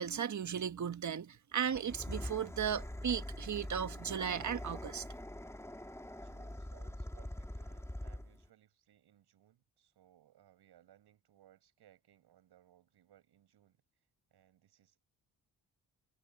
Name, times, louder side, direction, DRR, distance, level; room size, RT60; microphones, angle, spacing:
voice 1, 0.0-5.0, right 8 dB, 45° right, 1.6 m, -36 dB
sound 1, 1.7-8.5, left 1 dB, 5° left, 4.0 m, -44 dB
voice 2, 6.2-13.8 14.3-15.0, right 12 dB, 75° right, 7.7 m, -65 dB
supercardioid pair, 60°, 40 cm